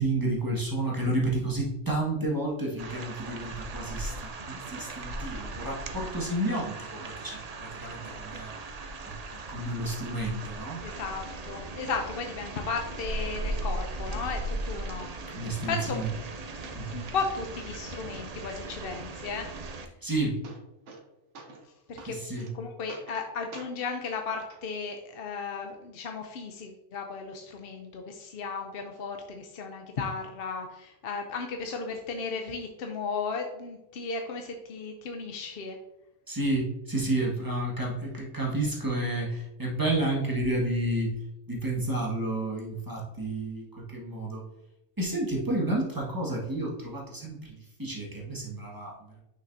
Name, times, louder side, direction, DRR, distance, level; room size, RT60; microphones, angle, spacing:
voice 1, 0.0-9.1 9.5-10.8 15.3-16.1 16.7-17.0 20.0-20.4 22.1-22.5 36.3-41.1 41.5-44.4 45.0-48.9, right 1 dB, 15° right, -3 dB, 1.5 m, -31 dB
sound 1, 2.8-19.9, right 2 dB, 50° right, 0.5 m, -38 dB
sound 2, 9.3-9.4 9.9-10.0 10.3-10.4 10.9-11.4 11.9-12.5 12.9-13.0 13.4-14.1 14.7-14.8 15.0-15.7 16.0-17.0 17.3-17.8 19.9-20.0 20.2-21.1 21.3-21.7 22.0-22.5 22.9-23.3 23.5-23.7 24.5-24.6 25.5-25.6, right 3 dB, 70° right, 1.2 m, -48 dB
voice 2, 10.8-15.1 15.7-16.0 16.9-19.5 19.7-19.8 21.9-35.8, left 4 dB, 55° left, 4 dB, 0.7 m, -35 dB
6.3 x 5.6 x 2.6 m, 0.94 s
omnidirectional pair, 1.3 m